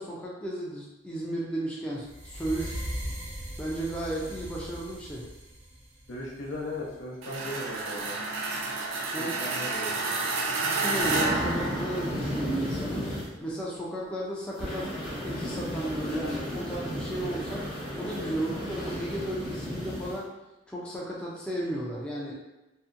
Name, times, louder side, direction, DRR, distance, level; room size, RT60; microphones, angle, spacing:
voice 1, 0.0-2.8 3.6-5.3 9.1-9.4 10.6-13.1 13.4-14.9 15.2-17.7 18.0-20.3 20.7-22.3, right 1 dB, 5° left, -6 dB, 0.4 m, -34 dB
sound 1, 2.0-7.1, equal, 65° right, 0.8 m, -39 dB
voice 2, 6.1-8.1 9.2-10.0, left 1 dB, 80° left, -3 dB, 0.6 m, -37 dB
sound 2, 7.2-12.4, right 3 dB, 90° right, 0.4 m, -30 dB
sound 3, 11.0-13.2 14.6-20.1, equal, 25° left, 0.8 m, -34 dB
2.7 x 2.1 x 2.5 m, 1.0 s
head